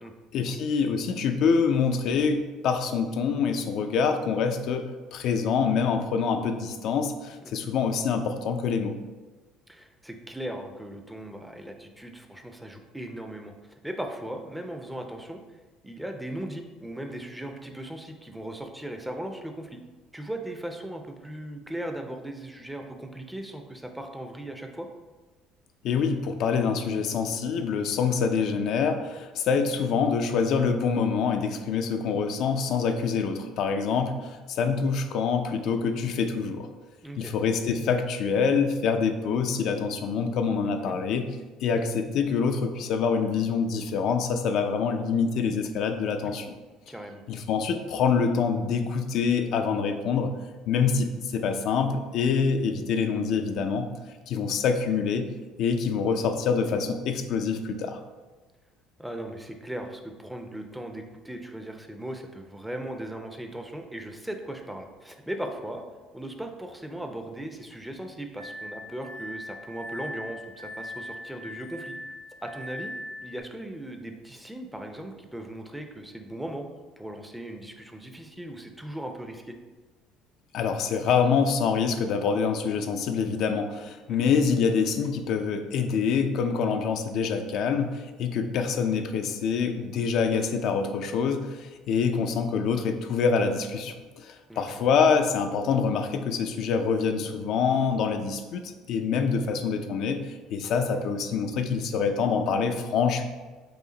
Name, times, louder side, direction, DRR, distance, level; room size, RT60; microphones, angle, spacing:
voice 1, 0.3-9.0 25.8-36.7 37.2-41.3 41.6-46.5 47.3-50.3 50.7-53.9 54.3-55.3 55.6-58.0 80.5-103.2, left 5 dB, 65° left, 6 dB, 0.4 m, -26 dB
voice 2, 9.7-15.4 15.8-19.8 20.1-24.9 37.0-37.3 40.6-41.0 46.2-46.3 46.9-47.2 59.0-65.8 66.1-71.9 72.4-72.9 73.2-76.6 77.0-79.6 84.1-84.2 94.5-94.8 100.9-101.1, right 1 dB, 5° right, 5 dB, 0.5 m, -38 dB
Glass, 68.4-73.4, left 1 dB, 80° right, 0.7 m, -40 dB
4.8 x 2.5 x 3.9 m, 1.3 s
cardioid pair, 105°, 0 cm